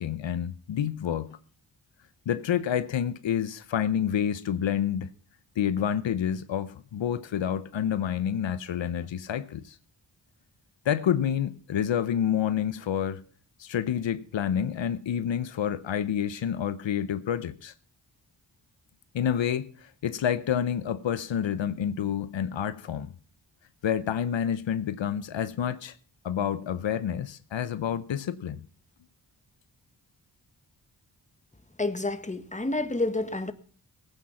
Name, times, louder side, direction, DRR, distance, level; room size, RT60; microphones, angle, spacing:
voice 1, 0.0-1.4 2.3-5.1 5.6-9.8 10.8-13.2 13.6-17.7 19.1-23.1 23.8-25.9 26.2-28.6, left 9 dB, 80° left, 0.9 m, -28 dB
voice 2, 31.8-33.5, left 2 dB, 15° left, 1.6 m, -29 dB
17.5 x 9.1 x 5.7 m
cardioid pair, 50°, 44 cm